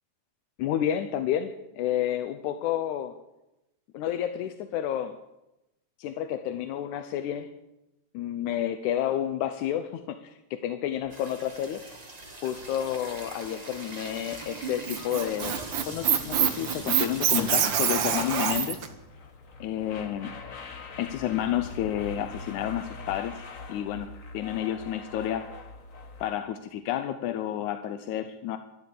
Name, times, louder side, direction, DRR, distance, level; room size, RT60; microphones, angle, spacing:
voice 1, 0.6-3.1 3.9-5.2 6.0-7.5 8.1-11.8 12.4-15.6 15.9-18.9 19.6-20.3 21.0-23.4 23.7-25.5 26.2-28.6, left 11 dB, 85° left, 9 dB, 2.2 m, -30 dB
sound 1, 11.0-26.3, left 4 dB, 65° left, 0.7 m, -45 dB
sound 2, 11.1-18.9 19.5-19.6 19.8-20.0 20.5-21.8, right 2 dB, 35° right, 0.6 m, -41 dB
Squeak, 14.6-18.9, right 8 dB, 60° right, 1.2 m, -25 dB
13.5 x 12.5 x 8.4 m, 0.93 s
omnidirectional pair, 3.4 m